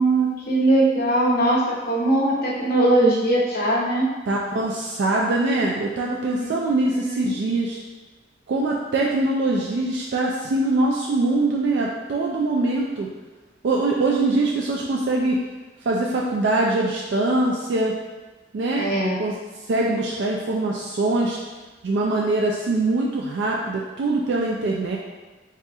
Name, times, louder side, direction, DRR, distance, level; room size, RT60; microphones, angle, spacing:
voice 1, 0.0-4.1 6.4-7.3 18.8-19.2, right 2 dB, 50° left, -5 dB, 1.0 m, -21 dB
voice 2, 4.3-7.8 8.5-13.1 13.6-15.4 15.8-18.0 18.5-18.9 19.2-19.3 19.7-21.4 21.8-25.0, right 2 dB, 60° right, -2 dB, 0.4 m, -23 dB
4.0 x 2.4 x 3.6 m, 1.2 s
head